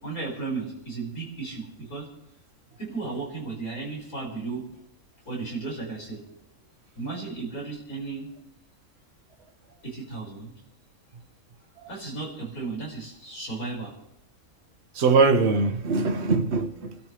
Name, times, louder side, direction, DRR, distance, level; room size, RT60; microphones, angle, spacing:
voice 1, 0.0-2.1 2.8-4.7 5.3-6.2 7.0-8.3 9.7-10.5 11.9-13.9, right 4 dB, 90° left, 6.4 m, -34 dB
voice 2, 14.9-16.9, right 4 dB, 50° right, 1.3 m, -22 dB
28.0 x 13.0 x 3.4 m
omnidirectional pair, 1.5 m